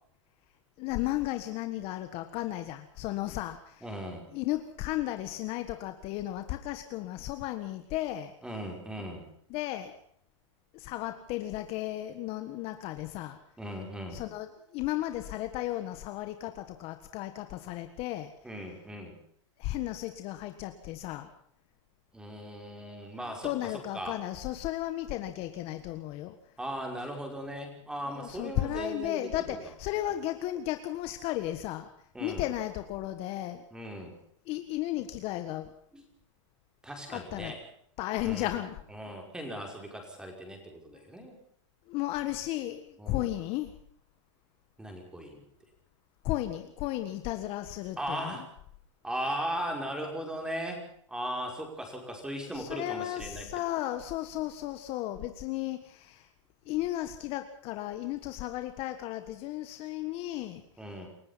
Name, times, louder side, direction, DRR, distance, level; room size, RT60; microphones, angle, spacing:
voice 1, 0.8-3.8 4.3-8.3 9.5-10.0 10.7-13.4 14.1-18.3 19.6-21.3 23.4-26.3 28.2-31.9 32.2-33.6 34.4-35.7 37.1-37.5 38.0-38.8 41.9-43.7 46.2-48.4 52.4-56.3 56.6-60.6, left 15 dB, 35° left, 8 dB, 1.6 m, -34 dB
voice 2, 3.8-4.2 8.4-9.3 13.6-14.2 18.4-19.2 22.1-24.2 26.6-29.6 32.1-32.5 33.7-34.1 35.9-36.0 36.8-37.6 38.2-38.5 38.9-41.4 43.0-43.3 44.8-45.4 48.0-48.5 49.0-50.8 51.1-53.5 60.8-61.1, equal, 5° right, 2 dB, 5.5 m, -38 dB
28.0 x 16.0 x 5.8 m, 0.64 s
hypercardioid pair, 140°, 16 cm